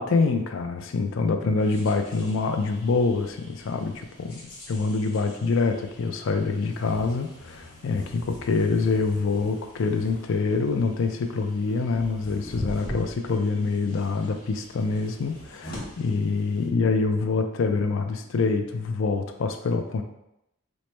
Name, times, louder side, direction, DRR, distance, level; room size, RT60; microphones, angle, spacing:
voice 1, 0.0-4.4 4.7-20.0, left 4 dB, 60° left, 6 dB, 0.4 m, -25 dB
sound 1, 1.6-16.7, equal, 40° left, 1.0 m, -43 dB
3.1 x 2.1 x 4.2 m, 0.84 s
head